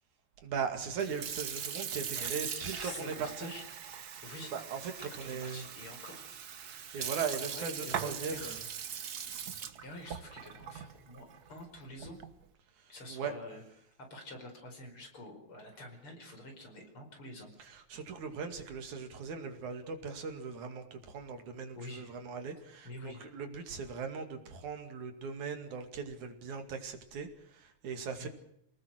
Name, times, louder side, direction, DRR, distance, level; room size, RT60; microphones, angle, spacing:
voice 1, 0.4-3.5 4.5-5.9 6.6-8.7 12.8-13.3 17.6-28.3, right 5 dB, 85° right, 3.9 m, -39 dB
Sink (filling or washing) / Fill (with liquid), 0.9-12.4, right 8 dB, 55° right, 1.0 m, -41 dB
voice 2, 2.1-3.6 4.2-4.5 5.0-6.3 7.0-8.6 9.8-12.2 12.9-13.6 14.1-17.5 21.8-22.1 22.8-23.3 28.2-28.3, left 1 dB, 45° left, 5.7 m, -47 dB
28.0 x 19.0 x 6.4 m
omnidirectional pair, 3.3 m